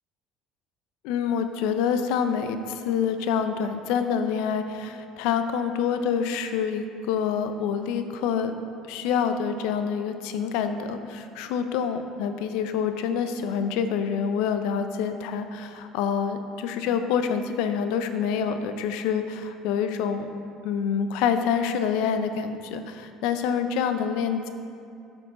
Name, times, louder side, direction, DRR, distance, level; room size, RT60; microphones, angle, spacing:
voice 1, 1.0-8.5 8.9-20.3 20.6-24.5, left 7 dB, 80° left, 8 dB, 0.5 m, -27 dB
8.7 x 6.2 x 3.8 m, 2.4 s
supercardioid pair, 105°, 0 cm